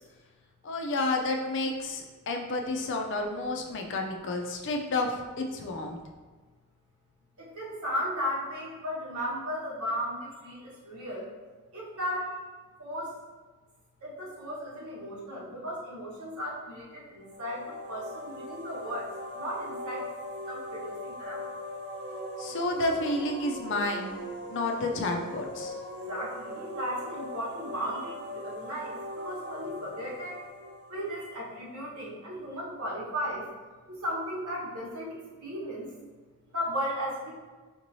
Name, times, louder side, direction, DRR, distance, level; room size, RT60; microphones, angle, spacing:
voice 1, 0.6-6.0 22.4-25.8, left 2 dB, 55° left, 3 dB, 0.5 m, -31 dB
voice 2, 7.4-11.3 11.7-12.3 12.8-13.1 14.0-19.1 19.3-20.1 20.5-21.4 26.1-30.4 30.9-33.4 33.9-35.9 36.5-37.3, equal, 90° right, -6 dB, 1.3 m, -35 dB
sound 1, 17.2-31.9, equal, 55° right, 0.6 m, -40 dB
5.0 x 3.1 x 2.7 m, 1.4 s
head